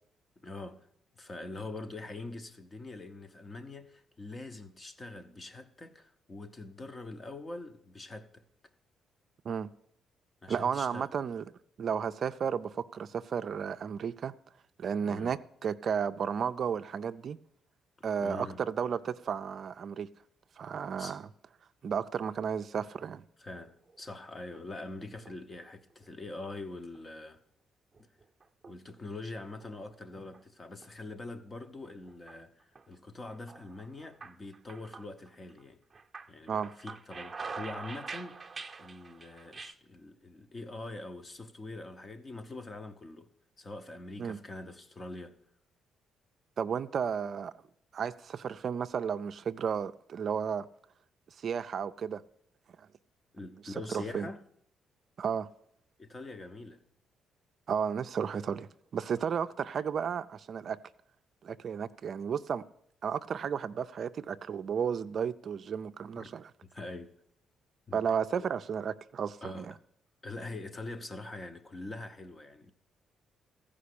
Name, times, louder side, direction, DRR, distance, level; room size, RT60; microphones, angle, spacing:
voice 1, 0.4-0.9 1.1-8.4 10.4-11.1 15.0-15.4 18.0-18.6 21.0-21.2 23.4-27.4 28.0-28.1 28.7-35.8 36.3-43.3 43.6-45.4 53.3-54.4 56.0-56.8 59.1-59.2 66.2-66.3 66.6-67.1 67.9-68.0 68.4-68.5 69.4-69.7 70.2-72.7, left 2 dB, 30° left, 0.9 m, -44 dB
voice 2, 10.5-11.4 11.8-14.3 14.8-17.4 18.0-20.1 20.6-21.2 21.8-23.2 36.5-36.7 44.2-44.4 46.6-47.5 47.9-50.7 51.4-52.2 53.6-54.3 55.2-55.5 57.7-58.7 58.9-60.8 61.4-62.6 63.0-66.4 67.9-69.7, right 7 dB, 55° right, 0.4 m, -33 dB
sound 1, 23.9-24.6 25.0-25.6 26.0-26.6 27.0-27.1 27.9-29.0 29.4-30.4 30.8-30.9 31.8-32.4 32.8-32.9 33.3-35.6 35.9-39.7, right 4 dB, 25° right, 0.8 m, -45 dB
14.5 x 5.1 x 8.4 m
cardioid pair, 90°, 0 cm